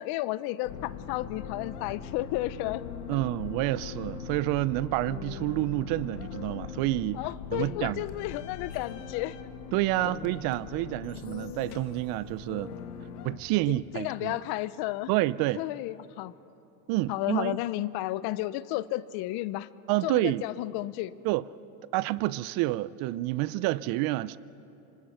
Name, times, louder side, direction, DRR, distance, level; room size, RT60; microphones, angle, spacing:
voice 1, 0.0-2.8 7.1-9.4 10.0-10.1 13.7-15.1 15.5-16.3 17.1-19.7 20.0-21.2, left 16 dB, 55° left, 0.8 m, -32 dB
sound 1, 0.6-13.4, left 7 dB, 75° left, 1.9 m, -41 dB
voice 2, 3.1-7.2 7.5-8.0 9.7-12.7 13.2-14.4 15.1-15.6 16.9-17.6 19.9-20.4 21.2-21.4 21.9-24.4, right 18 dB, 50° right, 0.6 m, -28 dB
26.5 x 25.0 x 5.7 m
supercardioid pair, 115°, 46 cm